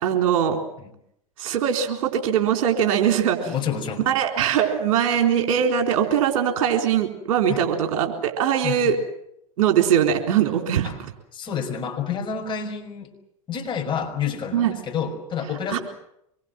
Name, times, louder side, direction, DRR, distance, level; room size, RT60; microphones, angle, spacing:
voice 1, 0.0-0.6 1.4-3.5 4.1-9.0 9.6-10.9 14.5-14.8 15.7-15.8, right 9 dB, 60° right, 4 dB, 4.0 m, -21 dB
voice 2, 3.4-4.1 7.5-7.7 8.6-9.0 10.8-11.0 11.3-13.1 13.5-15.8, left 7 dB, 25° left, 1 dB, 5.9 m, -29 dB
25.5 x 22.0 x 7.8 m, 0.77 s
figure-of-eight pair, 90°, 18 cm